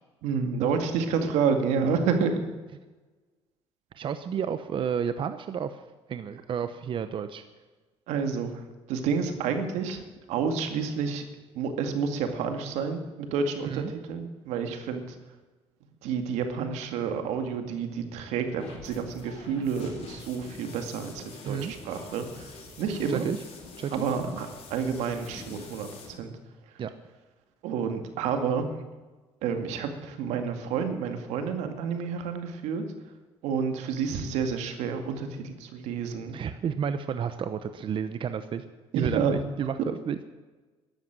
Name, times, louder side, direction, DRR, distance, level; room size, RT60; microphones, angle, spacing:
voice 1, 0.2-2.4 8.1-10.0 10.3-11.2 11.5-15.2 16.0-23.3 23.9-26.3 27.6-28.7 29.4-32.8 33.4-36.4 38.9-39.3, right 6 dB, 85° right, 6 dB, 2.1 m, -29 dB
voice 2, 4.0-5.8 6.1-7.4 13.7-13.9 21.4-21.7 23.1-23.4 23.8-24.3 26.8-26.9 36.3-38.6 38.9-40.3, right 7 dB, 50° right, 11 dB, 0.9 m, -31 dB
sound 1, 18.6-26.1, left 3 dB, 65° left, 5.1 m, -46 dB
13.0 x 12.0 x 7.6 m, 1.3 s
cardioid pair, 100°, 11 cm